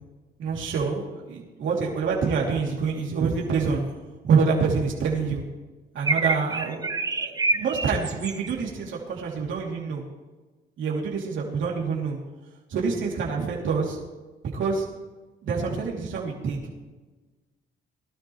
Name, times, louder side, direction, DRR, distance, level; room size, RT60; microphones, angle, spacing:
voice 1, 0.4-3.8 4.2-5.4 5.9-6.9 7.2-10.0 10.8-12.2 12.7-14.0 14.5-14.9 15.4-16.6, right 5 dB, 75° right, -3 dB, 3.0 m, -26 dB
sound 1, 6.0-8.5, right 3 dB, 20° right, 0.7 m, -27 dB
20.0 x 13.0 x 3.2 m, 1.2 s
cardioid pair, 90°, 20 cm